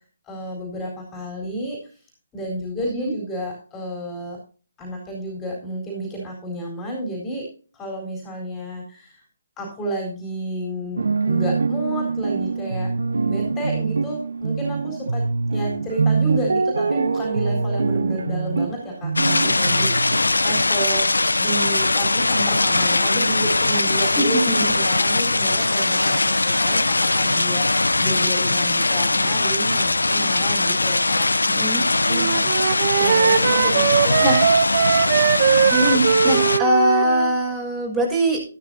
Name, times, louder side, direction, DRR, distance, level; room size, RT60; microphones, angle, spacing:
voice 1, 0.3-1.8 2.3-4.4 4.8-9.2 9.6-12.9 13.2-15.3 15.5-31.3 32.1-32.3 32.9-34.3, right 1 dB, 15° left, -1 dB, 4.2 m, -31 dB
sound 1, 11.0-20.2, right 4 dB, 75° right, 1.1 m, -24 dB
sound 2, 19.2-36.6, left 2 dB, 85° left, 0.9 m, -20 dB
voice 2, 24.1-24.7 31.5-31.9 33.0-33.4 34.2-34.4 35.7-38.4, right 1 dB, 15° right, -1 dB, 5.9 m, -22 dB
Wind instrument woodwind instrument, 32.1-37.3, right 8 dB, 45° right, 0.8 m, -20 dB
13.5 x 12.5 x 2.8 m, 0.38 s
figure-of-eight pair, 145°, 0 cm